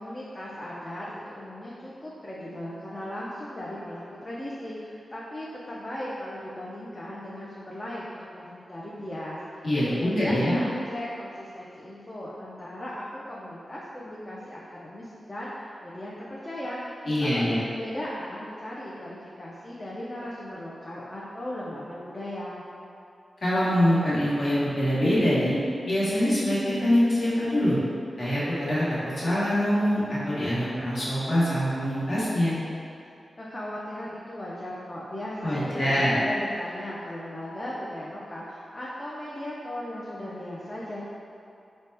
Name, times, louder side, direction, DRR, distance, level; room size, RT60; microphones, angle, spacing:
voice 1, 0.0-16.8 17.2-22.6 33.4-41.0, left 1 dB, 30° left, -7 dB, 0.5 m, -37 dB
voice 2, 9.6-10.6 17.0-17.6 23.4-25.6 25.9-27.8 28.2-32.5 35.4-36.1, equal, 55° left, -10 dB, 1.2 m, -24 dB
4.0 x 2.2 x 3.2 m, 2.6 s
wide cardioid pair, 80°, 0 cm